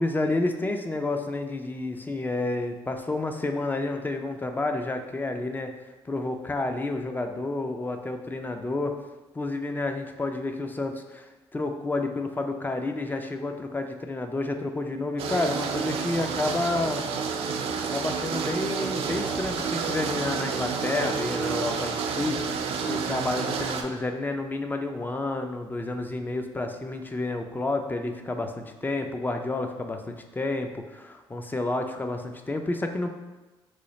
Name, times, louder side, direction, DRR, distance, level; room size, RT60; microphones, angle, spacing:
voice 1, 0.0-5.7 6.1-9.0 9.3-17.0 17.9-22.4 22.9-33.1, left 2 dB, 20° left, 5 dB, 0.3 m, -30 dB
sound 1, 15.2-23.8, right 5 dB, 75° right, 0.4 m, -29 dB
3.1 x 2.3 x 3.9 m, 1.1 s
cardioid pair, 85°, 10 cm